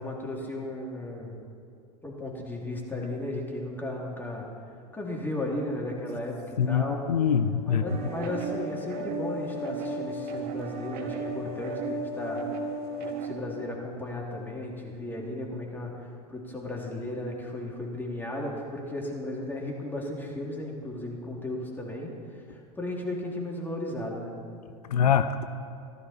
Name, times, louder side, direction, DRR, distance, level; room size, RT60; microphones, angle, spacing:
voice 1, 0.0-1.4 2.0-4.5 4.9-7.0 7.7-12.4 13.0-22.1 22.5-24.3, left 1 dB, 10° left, -2 dB, 2.8 m, -35 dB
voice 2, 6.6-7.8 24.9-25.5, left 8 dB, 80° left, 11 dB, 0.5 m, -24 dB
sound 1, 7.9-13.3, right 2 dB, 50° right, 1.6 m, -34 dB
15.0 x 12.5 x 4.3 m, 2.5 s
hypercardioid pair, 90°, 20 cm